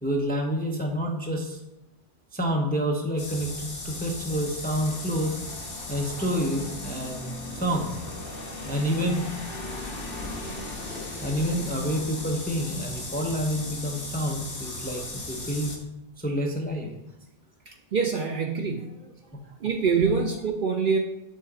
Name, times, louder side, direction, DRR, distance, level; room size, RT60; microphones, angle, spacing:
voice 1, 0.0-1.6 2.3-5.4 5.9-8.0 8.6-9.3 11.2-15.7 16.2-16.9, equal, 10° left, 1 dB, 0.5 m, -28 dB
sound 1, 3.2-15.8, left 2 dB, 50° left, 1.4 m, -37 dB
voice 2, 17.7-19.1 19.6-21.0, right 5 dB, 55° right, 3 dB, 0.6 m, -25 dB
5.6 x 3.7 x 4.9 m, 0.89 s
omnidirectional pair, 1.2 m